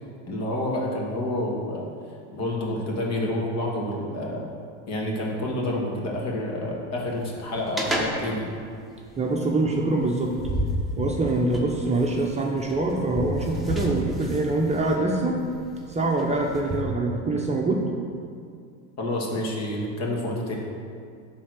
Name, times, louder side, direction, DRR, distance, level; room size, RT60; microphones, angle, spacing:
voice 1, 0.3-1.9 2.3-4.5 4.9-8.5 19.0-20.5, left 1 dB, 45° left, -2 dB, 2.0 m, -28 dB
sound 1, 7.1-16.8, equal, ahead, 1.3 m, -32 dB
voice 2, 9.2-10.4 11.0-15.4 15.9-17.9, right 2 dB, 20° right, -1 dB, 0.9 m, -24 dB
9.8 x 3.8 x 6.5 m, 2.3 s
supercardioid pair, 105°, 36 cm